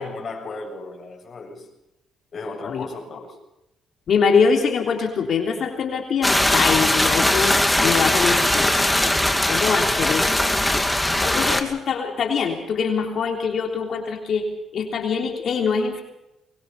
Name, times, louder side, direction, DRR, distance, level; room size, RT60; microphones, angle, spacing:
voice 1, 0.0-1.7 2.3-3.4 9.9-10.4, left 3 dB, 45° left, 7.3 m, -35 dB
voice 2, 4.1-7.6 7.8-8.8 9.0-10.2 11.2-14.5 14.7-16.0, left 5 dB, 60° left, 3.5 m, -23 dB
sound 1, 6.2-11.6, left 1 dB, 5° left, 2.5 m, -20 dB
23.5 x 21.5 x 5.7 m
cardioid pair, 90°, 0 cm